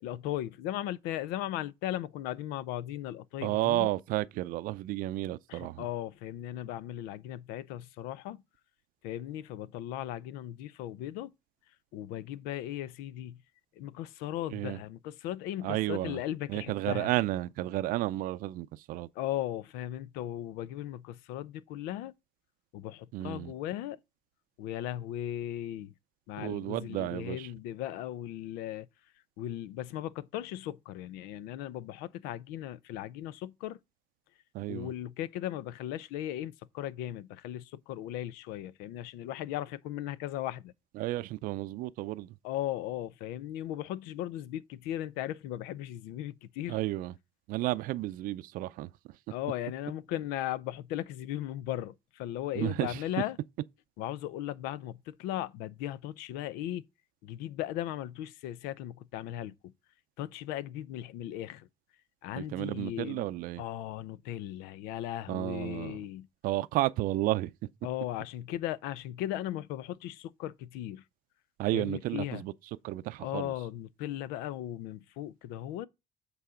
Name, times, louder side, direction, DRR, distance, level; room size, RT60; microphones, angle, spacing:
voice 1, 0.0-3.9 5.5-8.4 9.0-11.3 11.9-13.4 13.8-17.1 19.2-22.1 22.7-24.0 24.6-25.9 26.3-28.9 29.4-33.8 34.7-40.7 42.4-46.8 49.3-53.4 54.0-56.8 57.2-59.5 60.2-61.7 62.2-63.3 63.6-66.3 67.8-71.0 71.7-72.4 73.2-75.9, left 12 dB, 85° left, 0.5 m, -37 dB
voice 2, 3.4-5.9 14.5-14.8 15.6-16.2 16.5-19.1 23.1-23.5 26.4-27.5 34.5-34.9 40.9-42.4 46.7-47.1 47.5-48.9 52.5-53.0 62.4-63.6 65.3-66.0 66.4-67.5 71.6-72.5 72.8-73.5, right 16 dB, 65° right, 0.5 m, -32 dB
8.1 x 4.1 x 4.9 m
cardioid pair, 125°, 15 cm